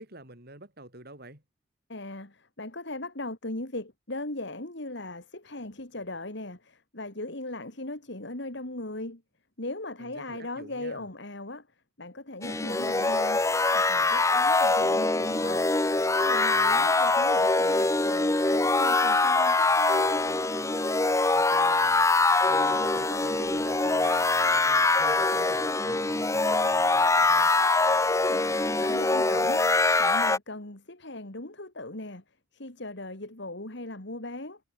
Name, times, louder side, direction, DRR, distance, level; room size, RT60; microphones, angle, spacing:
voice 1, 0.0-1.4 10.0-11.1 16.5-16.9 21.3-22.1 22.5-27.5, right 1 dB, 50° right, 6.2 m, -47 dB
voice 2, 1.9-9.2 9.6-11.7 12.0-13.4 13.7-15.6 16.1-20.2 28.1-28.4 28.8-29.7 30.0-32.2 32.5-34.6, left 2 dB, 55° left, 2.7 m, -38 dB
sound 1, 12.4-30.4, left 3 dB, 15° left, 0.7 m, -23 dB
head